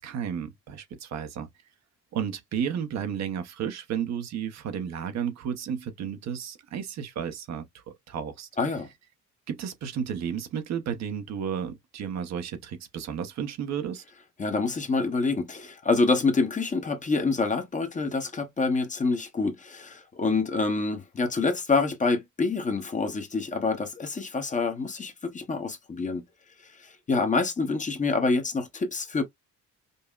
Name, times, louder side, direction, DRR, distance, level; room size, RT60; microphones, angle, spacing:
voice 1, 0.0-1.5 2.1-8.5 9.5-14.0, right 8 dB, 60° right, 0.8 m, -33 dB
voice 2, 8.6-8.9 14.4-26.2 26.8-29.2, left 3 dB, 25° left, 0.8 m, -27 dB
5.3 x 2.0 x 2.3 m
cardioid pair, 130°, 31 cm